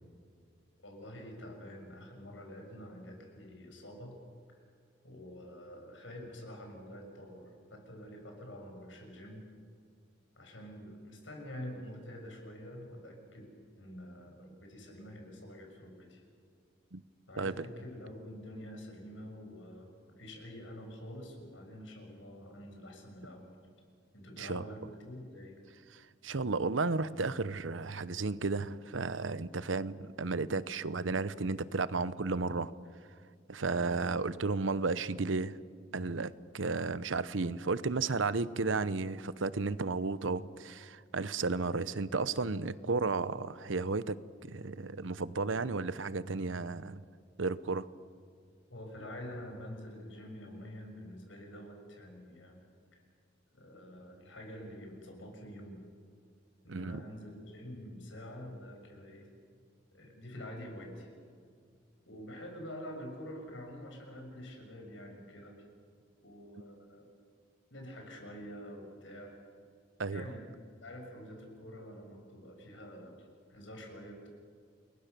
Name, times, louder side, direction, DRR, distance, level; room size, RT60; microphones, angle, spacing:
voice 1, 0.8-4.1 4.5-4.6 5.0-7.4 7.7-9.4 10.4-13.5 13.8-16.2 17.3-23.5 24.1-25.6 48.7-52.6 52.9-53.0 53.5-55.8 56.6-59.3 59.9-61.1 62.1-65.6 66.2-67.1 67.7-69.3 70.1-70.5 70.8-74.3, equal, 80° left, 3 dB, 6.6 m, -47 dB
voice 2, 25.9-32.7 33.5-35.6 35.9-44.2 44.4-47.0 47.4-47.9 56.7-57.0 70.0-70.3, right 3 dB, 90° right, 16 dB, 0.9 m, -33 dB
29.0 x 22.0 x 6.9 m, 2.2 s
head